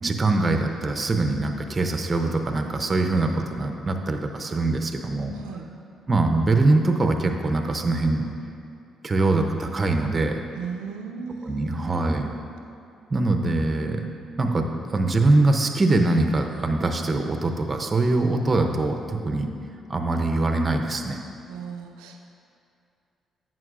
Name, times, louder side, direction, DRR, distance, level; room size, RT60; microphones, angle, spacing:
voice 1, 0.0-5.3 6.1-8.2 9.0-10.4 11.5-12.3 13.1-14.0 14.4-19.5 19.9-21.2, right 2 dB, 35° right, 4 dB, 0.7 m, -23 dB
voice 2, 5.3-5.7 10.5-11.7 21.5-22.2, right 5 dB, 85° right, 3 dB, 0.4 m, -36 dB
9.1 x 6.0 x 2.5 m, 2.6 s
supercardioid pair, 55°, 0 cm